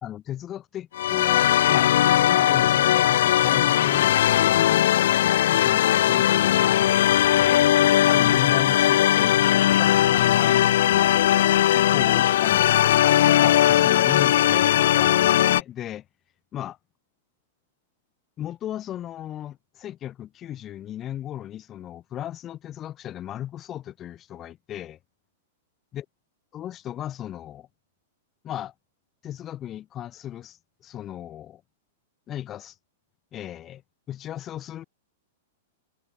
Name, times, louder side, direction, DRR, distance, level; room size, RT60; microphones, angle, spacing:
voice 1, 0.0-4.2 4.6-4.9 5.5-6.8 7.4-7.7 8.1-9.4 9.6-11.1 11.7-12.8 13.4-16.0 16.5-16.8 18.4-25.0 25.9-26.0 26.5-27.7 28.4-28.7 29.2-31.6 32.3-32.7 33.3-33.8 34.1-34.8, left 11 dB, 30° left, 2.9 m, -36 dB
sound 1, 1.0-15.6, left 12 dB, 70° left, 1.0 m, -19 dB
hypercardioid pair, 110°, 0 cm